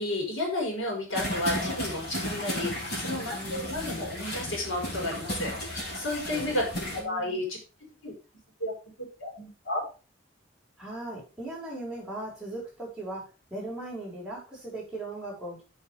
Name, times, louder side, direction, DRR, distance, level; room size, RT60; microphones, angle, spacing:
voice 1, 0.0-6.7 7.0-7.6 8.0-8.1 8.6-8.7 9.2-9.8, left 1 dB, 80° left, 0 dB, 5.0 m, -32 dB
sound 1, 1.1-7.0, equal, 50° left, 5.4 m, -34 dB
voice 2, 3.3-4.2 6.3-7.4 10.8-15.6, right 1 dB, 5° right, -5 dB, 5.3 m, -39 dB
8.0 x 7.6 x 4.9 m, 0.33 s
head